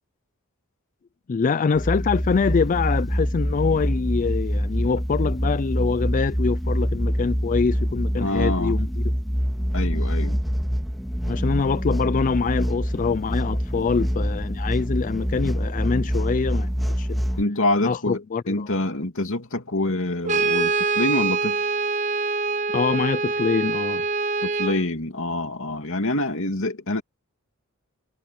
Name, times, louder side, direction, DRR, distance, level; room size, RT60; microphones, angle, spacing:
voice 1, 1.3-8.9 11.2-17.3 17.8-18.7 22.7-24.0, left 5 dB, 35° left, 0.3 m, -24 dB
sound 1, 1.8-17.4, equal, ahead, 2.1 m, -25 dB
voice 2, 8.2-8.8 9.7-10.4 17.4-21.7 24.4-27.0, left 1 dB, 60° left, 2.7 m, -26 dB
Brass instrument, 20.2-24.8, right 4 dB, 35° right, 0.8 m, -24 dB
head